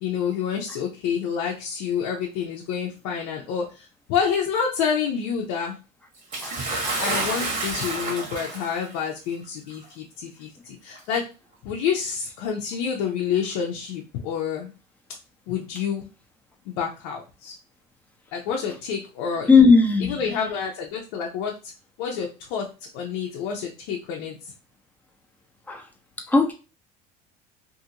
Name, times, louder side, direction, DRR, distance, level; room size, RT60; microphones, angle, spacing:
voice 1, 0.0-5.8 7.0-11.2 11.6-14.7 15.5-16.1 16.7-17.5 18.3-19.5 20.0-21.5 22.0-22.7 22.9-24.4, left 7 dB, 75° left, 0 dB, 0.6 m, -28 dB
Bathtub (filling or washing) / Splash splatter, 6.3-8.9 9.8-9.9 10.9-11.0, right 2 dB, 40° right, 1.3 m, -29 dB
voice 2, 19.5-20.3 25.7-25.8 26.3-26.5, left 4 dB, 10° left, 3 dB, 0.7 m, -17 dB
2.7 x 2.5 x 2.8 m, 0.32 s
supercardioid pair, 105°, 21 cm